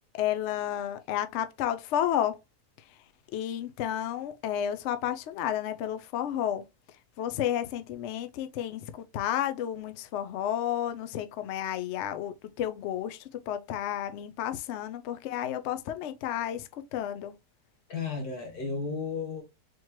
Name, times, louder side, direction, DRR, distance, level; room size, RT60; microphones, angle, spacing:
voice 1, 0.1-2.4 3.3-6.6 7.2-17.3, left 10 dB, 85° left, 0.6 m, -31 dB
voice 2, 17.9-19.4, left 4 dB, 65° left, 2.2 m, -33 dB
4.3 x 3.0 x 2.9 m
omnidirectional pair, 1.8 m